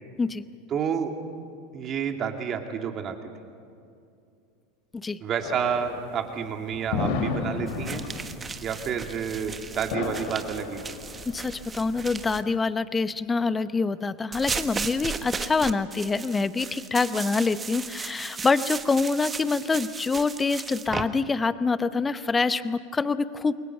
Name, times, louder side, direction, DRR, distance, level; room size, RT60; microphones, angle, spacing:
voice 1, 0.7-1.1 1.7-3.2 5.2-8.0 8.6-10.8, right 7 dB, 40° right, 4 dB, 2.6 m, -29 dB
sound 1, 5.4-12.4, left 4 dB, 60° left, 3.0 m, -34 dB
sound 2, 7.7-12.4 14.3-21.0, right 5 dB, 20° right, 1.3 m, -36 dB
voice 2, 11.3-23.6, left 4 dB, 20° left, 14 dB, 0.9 m, -26 dB
29.0 x 22.5 x 5.8 m, 2.4 s
hypercardioid pair, 85°, 0 cm